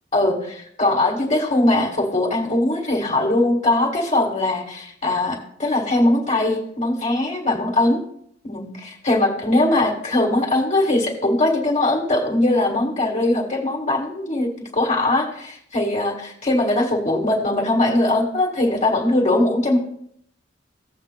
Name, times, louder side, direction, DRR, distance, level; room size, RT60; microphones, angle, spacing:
voice 1, 0.1-8.0 8.4-19.8, left 2 dB, 40° left, -1 dB, 1.7 m, -21 dB
16.0 x 7.4 x 2.2 m, 0.69 s
head